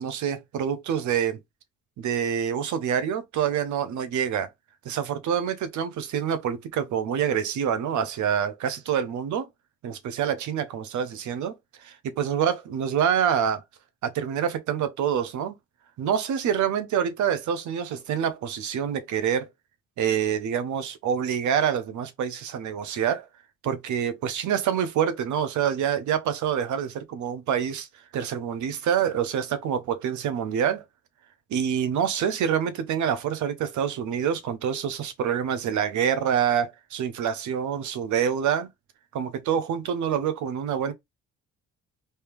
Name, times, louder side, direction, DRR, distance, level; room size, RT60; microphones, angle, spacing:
voice 1, 0.0-1.4 2.0-4.5 4.8-9.5 9.8-11.5 11.8-13.6 14.0-15.6 16.0-19.5 20.0-23.3 23.6-27.9 28.1-30.8 31.5-38.7 39.1-40.9, right 8 dB, 75° right, 0.8 m, -26 dB
3.3 x 2.8 x 3.4 m
cardioid pair, 90°, 30 cm